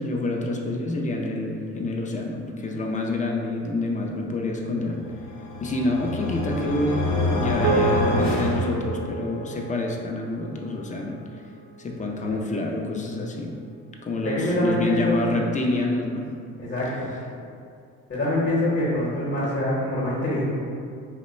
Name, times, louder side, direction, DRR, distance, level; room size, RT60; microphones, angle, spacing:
voice 1, 0.0-5.0 5.6-7.0 7.3-11.2 11.8-13.5 14.0-16.2, left 2 dB, 25° left, 0 dB, 0.4 m, -27 dB
sound 1, 5.1-9.4, left 2 dB, 70° left, 0.8 m, -27 dB
sound 2, 7.6-12.2, right 4 dB, 55° right, 0.5 m, -30 dB
voice 2, 14.2-15.2 16.6-17.1 18.1-20.4, left 1 dB, 40° left, -7 dB, 0.9 m, -25 dB
3.0 x 2.1 x 4.1 m, 2.4 s
cardioid pair, 90°, 30 cm